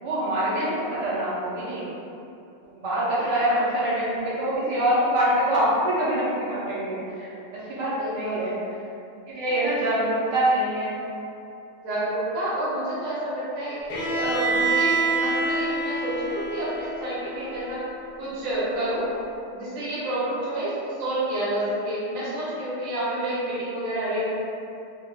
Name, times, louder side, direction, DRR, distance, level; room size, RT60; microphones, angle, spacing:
voice 1, 0.0-1.9 2.6-8.6 9.3-11.0, right 1 dB, 60° right, -8 dB, 1.3 m, -25 dB
voice 2, 8.0-8.6 9.5-9.7 11.8-17.8 18.2-19.1 19.5-20.7 21.0-24.3, right 1 dB, 80° right, -10 dB, 1.8 m, -29 dB
Bowed string instrument, 13.9-17.8, right 2 dB, 75° left, 1.2 m, -26 dB
4.6 x 2.4 x 2.2 m, 2.7 s
omnidirectional pair, 2.3 m